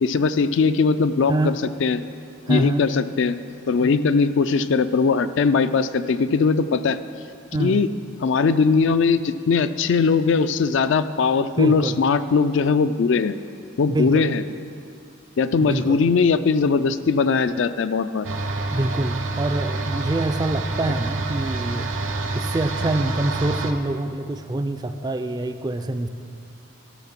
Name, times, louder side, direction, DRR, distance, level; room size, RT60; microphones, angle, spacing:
voice 1, 0.0-2.0 2.5-3.3 3.7-7.0 7.6-7.9 8.2-13.4 13.8-14.4 15.4-18.3, left 5 dB, 60° left, 12 dB, 0.4 m, -20 dB
voice 2, 2.5-2.8 7.5-7.8 11.6-12.0 13.9-14.3 15.6-16.0 18.7-21.9 22.3-26.1, right 2 dB, 20° right, 8 dB, 0.3 m, -25 dB
sound 1, 18.2-23.7, right 3 dB, 65° right, 0.8 m, -27 dB
12.0 x 6.6 x 5.8 m, 2.3 s
head